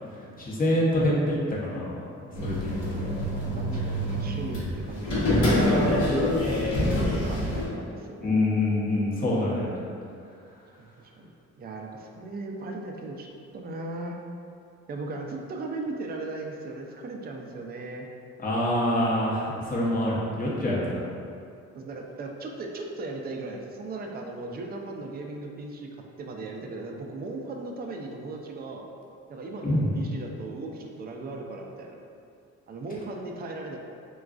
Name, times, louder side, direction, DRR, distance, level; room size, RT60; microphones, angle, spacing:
voice 1, 0.4-2.1 2.4-3.1 8.2-9.7 18.4-21.0 29.6-29.9, left 1 dB, 30° left, -6 dB, 0.8 m, -26 dB
sound 1, 2.3-7.7, left 1 dB, 70° left, 1.0 m, -26 dB
voice 2, 3.5-8.3 10.8-10.9 11.2-11.3 11.6-13.3 13.5-14.2 14.9-18.1 21.8-25.9 26.2-28.9 29.3-32.0 32.7-33.8, right 2 dB, 30° right, 1 dB, 0.4 m, -37 dB
3.7 x 2.3 x 2.4 m, 2.5 s
cardioid pair, 90°, 30 cm